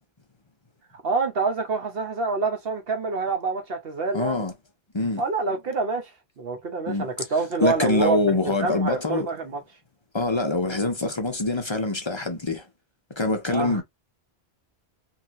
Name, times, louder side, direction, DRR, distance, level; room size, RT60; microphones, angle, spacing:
voice 1, 1.0-4.5 5.2-9.6 13.5-13.8, right 4 dB, 65° right, 1.0 m, -27 dB
voice 2, 4.1-4.5 4.9-5.2 6.9-7.1 7.6-9.3 10.1-12.7 13.2-13.8, left 2 dB, 30° left, 0.7 m, -24 dB
3.2 x 2.7 x 2.6 m
omnidirectional pair, 1.1 m